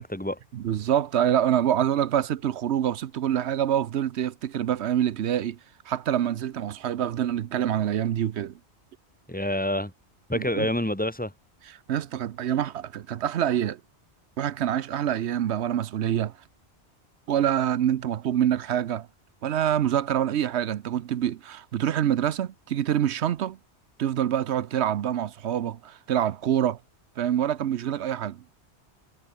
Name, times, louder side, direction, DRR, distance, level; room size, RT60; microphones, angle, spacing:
voice 1, 0.0-0.4 9.3-9.9 10.3-11.3, left 1 dB, 5° left, 2.6 m, -27 dB
voice 2, 0.5-5.6 5.9-8.5 10.3-10.7 11.7-13.8 14.4-16.3 17.3-19.1 19.4-23.6 24.0-26.8 27.2-28.4, right 10 dB, 75° right, 1.0 m, -26 dB
omnidirectional pair, 1.2 m